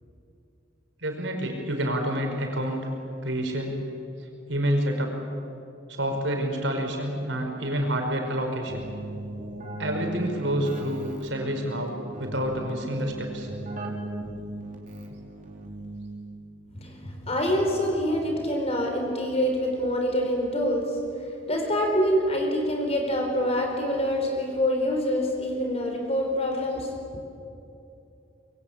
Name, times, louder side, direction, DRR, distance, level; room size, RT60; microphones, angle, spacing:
voice 1, 1.0-2.9 3.2-3.8 4.5-5.2 5.9-8.9 9.8-13.5, equal, 75° right, 2 dB, 5.1 m, -28 dB
Keyboard (musical), 8.7-16.5, right 1 dB, 45° right, 3.6 m, -37 dB
voice 2, 16.7-27.0, equal, 35° left, 2 dB, 4.6 m, -26 dB
25.0 x 23.0 x 8.8 m, 2.7 s
head